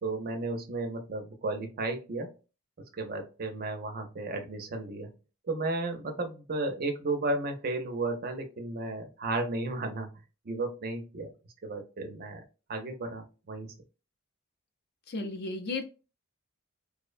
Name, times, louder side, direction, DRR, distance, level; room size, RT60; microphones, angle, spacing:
voice 1, 0.0-2.3 3.0-5.1 5.5-10.1 10.5-11.3 11.6-12.4 12.7-13.7, right 2 dB, 45° right, 5 dB, 0.5 m, -33 dB
voice 2, 15.1-15.9, left 3 dB, 50° left, 6 dB, 0.4 m, -34 dB
2.5 x 2.1 x 2.4 m, 0.32 s
head